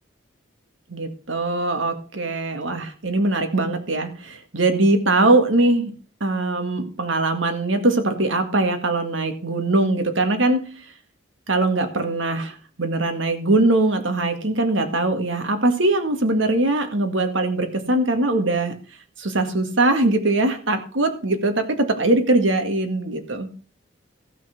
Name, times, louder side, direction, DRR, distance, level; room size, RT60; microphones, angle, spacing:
voice 1, 0.9-5.9 6.2-10.6 11.5-18.7 19.2-23.5, right 2 dB, 70° right, 7 dB, 2.0 m, -21 dB
15.0 x 5.9 x 6.0 m, 0.39 s
head